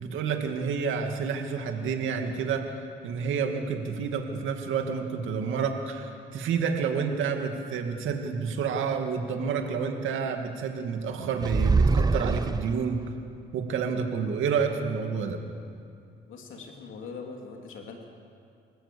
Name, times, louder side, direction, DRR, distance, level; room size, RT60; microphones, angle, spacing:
voice 1, 0.0-2.6 3.0-13.0 13.5-15.4, right 6 dB, 80° right, 4 dB, 2.4 m, -29 dB
sound 1, 11.4-13.0, right 4 dB, 20° right, 0.6 m, -24 dB
voice 2, 16.3-18.1, left 4 dB, 80° left, 2 dB, 3.1 m, -42 dB
28.0 x 15.5 x 7.1 m, 2.4 s
cardioid pair, 90°, 20 cm